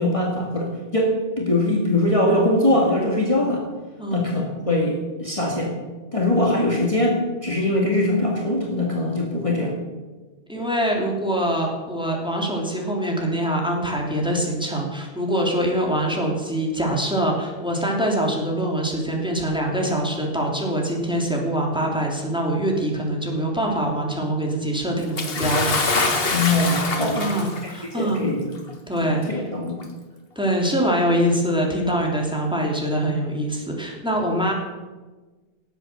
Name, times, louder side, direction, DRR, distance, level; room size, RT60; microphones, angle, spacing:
voice 1, 0.0-3.7 4.1-5.7 6.1-9.7 26.3-27.4 27.6-28.5 29.0-29.8, left 1 dB, 30° left, -2 dB, 2.1 m, -22 dB
voice 2, 10.5-25.8 27.2-28.2 28.9-29.2 30.3-34.5, right 1 dB, 5° right, -1 dB, 3.1 m, -24 dB
Bathtub (filling or washing) / Splash splatter, 25.2-27.8 28.7-28.8 29.8-29.9, left 3 dB, 65° left, 1.7 m, -24 dB
18.0 x 8.2 x 6.8 m, 1.3 s
omnidirectional pair, 1.0 m